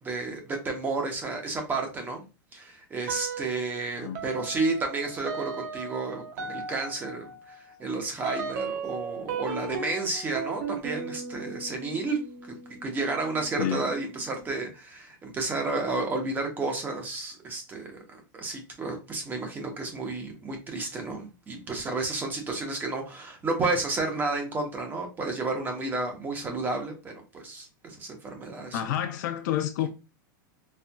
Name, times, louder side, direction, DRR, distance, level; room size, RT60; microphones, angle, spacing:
voice 1, 0.0-2.3 2.5-12.2 12.5-28.8, right 3 dB, 15° right, 0.8 m, -31 dB
sound 1, 3.1-3.8 4.2-14.5, right 5 dB, 60° right, 0.8 m, -37 dB
voice 2, 13.6-13.9 28.7-29.9, left 11 dB, 60° left, 0.6 m, -29 dB
4.3 x 2.4 x 2.2 m
supercardioid pair, 150°, 11 cm